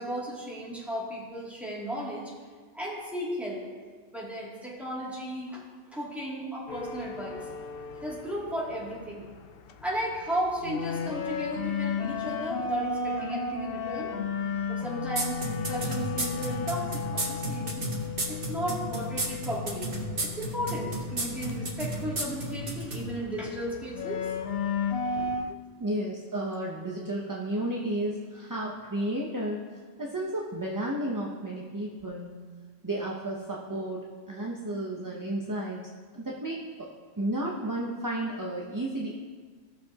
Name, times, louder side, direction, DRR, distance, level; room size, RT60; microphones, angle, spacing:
voice 1, 0.0-2.3 2.7-3.7 4.1-5.6 5.9-7.5 8.0-9.3 9.8-14.1 14.7-17.9 18.3-19.9 20.2-24.3, equal, ahead, -7 dB, 2.5 m, -35 dB
sound 1, 6.7-25.5, left 5 dB, 60° left, 0.7 m, -35 dB
sound 2, 15.2-23.0, right 2 dB, 50° right, 1.5 m, -32 dB
voice 2, 25.8-29.7 30.0-32.4 32.8-35.8 36.1-36.9 37.2-39.2, right 1 dB, 20° right, -3 dB, 0.6 m, -32 dB
17.0 x 6.7 x 2.9 m, 1.5 s
omnidirectional pair, 1.2 m